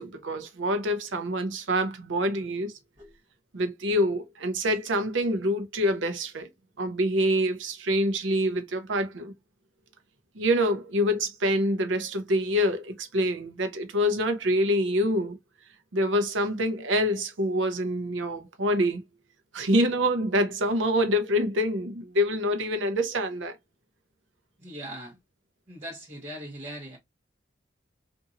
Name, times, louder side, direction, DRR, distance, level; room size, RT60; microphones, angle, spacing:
voice 1, 0.0-2.7 3.5-6.5 6.8-9.3 10.3-15.4 15.9-19.0 19.5-23.6, equal, 80° right, 0.7 m, -26 dB
voice 2, 24.6-25.2 25.7-27.0, right 1 dB, 35° right, 1.1 m, -40 dB
2.7 x 2.6 x 2.5 m
head